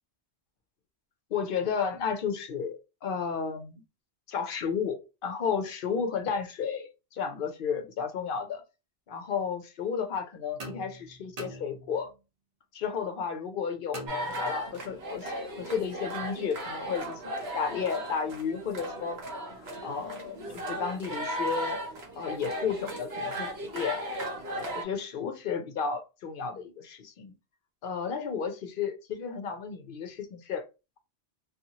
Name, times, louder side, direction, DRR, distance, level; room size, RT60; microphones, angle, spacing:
voice 1, 1.3-3.8 4.3-8.6 9.1-12.1 12.7-19.2 19.6-21.8 22.2-24.0 24.7-27.3 27.8-30.7, left 6 dB, 60° left, 0.7 m, -33 dB
sound 1, 10.6-12.2 13.9-14.9, right 1 dB, 40° right, 0.7 m, -44 dB
sound 2, 14.1-24.8, right 1 dB, 65° right, 1.1 m, -36 dB
2.6 x 2.4 x 2.8 m
omnidirectional pair, 1.1 m